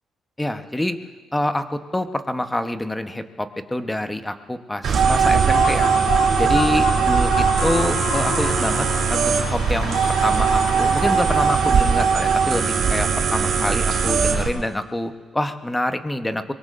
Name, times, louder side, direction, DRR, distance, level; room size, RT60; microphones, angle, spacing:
voice 1, 0.4-1.0 1.3-5.9 6.4-16.5, left 1 dB, 10° left, 8 dB, 1.0 m, -26 dB
sound 1, 4.8-14.5, right 6 dB, 70° right, 2.3 m, -20 dB
Human voice / Cheering / Applause, 5.0-12.7, left 6 dB, 90° left, 0.9 m, -31 dB
24.5 x 21.5 x 2.6 m, 1.5 s
cardioid pair, 90°, 0 cm